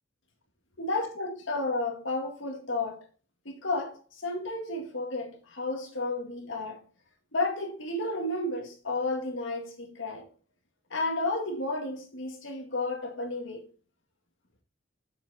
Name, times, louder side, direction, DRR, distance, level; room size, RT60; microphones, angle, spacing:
voice 1, 0.8-3.0 3.5-6.8 7.3-10.2 10.9-13.6, left 2 dB, 70° left, 1.9 m, -32 dB
7.3 x 6.0 x 4.1 m
head